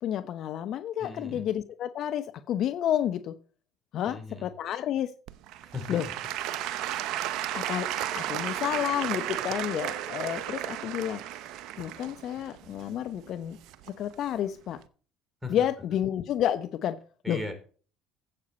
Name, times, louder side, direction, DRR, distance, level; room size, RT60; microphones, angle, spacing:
voice 1, 0.0-3.3 3.9-5.1 5.9-6.1 7.5-7.9 8.2-11.2 11.8-13.6 14.0-14.8 15.5-17.0 17.3-17.4, left 10 dB, 55° left, 11 dB, 0.8 m, -30 dB
voice 2, 1.0-1.5 4.1-4.5 5.6-6.0 15.4-15.5 17.2-17.5, left 2 dB, 5° right, 6 dB, 3.9 m, -37 dB
Applause / Crowd, 5.3-14.1 14.8-14.9, right 12 dB, 60° right, 0.8 m, -34 dB
12.0 x 8.4 x 4.2 m, 0.40 s
hypercardioid pair, 70°, 0 cm